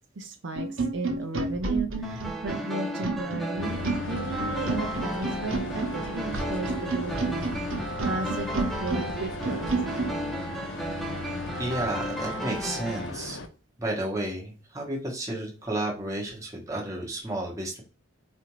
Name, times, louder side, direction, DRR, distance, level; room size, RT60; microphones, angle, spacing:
voice 1, 0.2-9.7, right 2 dB, 60° right, 5 dB, 0.4 m, -35 dB
sound 1, 0.6-10.2, right 3 dB, 75° right, 1.0 m, -31 dB
sound 2, 2.0-13.1, right 1 dB, ahead, 0.4 m, -34 dB
sound 3, 3.6-13.5, left 2 dB, 65° left, 0.5 m, -37 dB
voice 2, 11.6-13.4 13.8-17.8, right 1 dB, 15° right, -3 dB, 1.0 m, -32 dB
4.2 x 2.5 x 3.0 m, 0.36 s
head